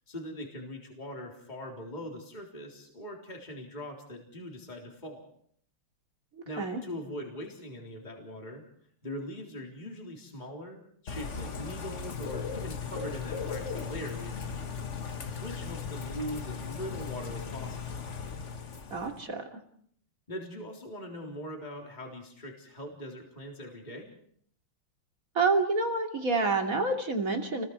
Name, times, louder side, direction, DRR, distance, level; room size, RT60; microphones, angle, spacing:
voice 1, 0.1-5.3 6.5-8.6 9.0-14.8 15.4-18.0 20.3-24.1, equal, 20° left, 1 dB, 3.8 m, -41 dB
voice 2, 6.3-6.8 18.9-19.6 25.3-27.6, right 3 dB, 40° right, 3 dB, 3.1 m, -28 dB
Bird / Rain, 11.1-19.2, left 6 dB, 40° left, 1.4 m, -37 dB
30.0 x 21.5 x 4.7 m, 0.63 s
omnidirectional pair, 2.4 m